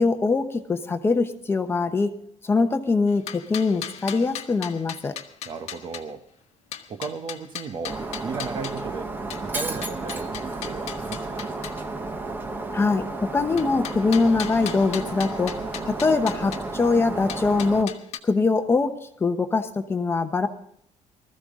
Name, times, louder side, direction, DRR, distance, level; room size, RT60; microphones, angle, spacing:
voice 1, 0.0-2.1 2.4-5.1 12.7-15.6 15.8-17.9 18.2-18.9 19.2-20.5, left 4 dB, 20° left, 7 dB, 0.9 m, -23 dB
sound 1, 3.1-6.0 6.7-8.8 9.3-11.8 13.6-16.6 17.3-18.2, left 10 dB, 60° left, 1.2 m, -37 dB
voice 2, 5.4-6.3 6.9-9.1 9.4-11.5, right 5 dB, 40° right, 9 dB, 1.0 m, -35 dB
Shatter, 7.9-17.8, right 3 dB, 15° right, 1.1 m, -32 dB
20.5 x 14.0 x 3.7 m, 0.67 s
cardioid pair, 160°, 12 cm